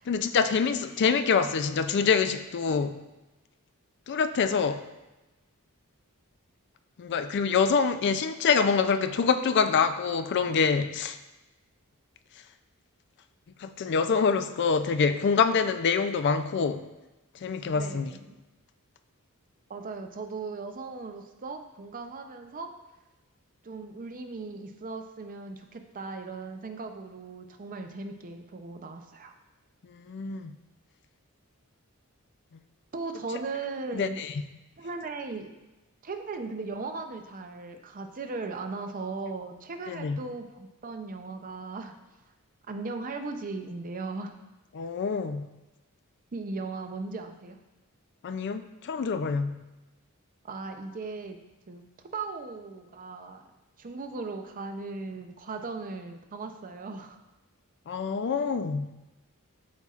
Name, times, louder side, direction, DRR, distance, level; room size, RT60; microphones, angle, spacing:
voice 1, 0.1-3.0 4.1-4.8 7.0-11.2 13.6-16.9 17.4-18.1 29.9-30.5 33.9-34.3 39.9-40.2 44.7-45.5 48.2-49.6 57.9-58.9, left 5 dB, 50° left, 10 dB, 0.4 m, -26 dB
voice 2, 17.7-18.4 19.7-22.7 23.6-29.3 32.9-34.2 34.8-35.6 36.0-42.0 42.7-44.4 46.3-47.6 50.4-51.4 51.7-53.4 53.8-57.2, right 3 dB, 40° right, 6 dB, 0.5 m, -38 dB
12.0 x 4.2 x 2.4 m, 1.0 s
head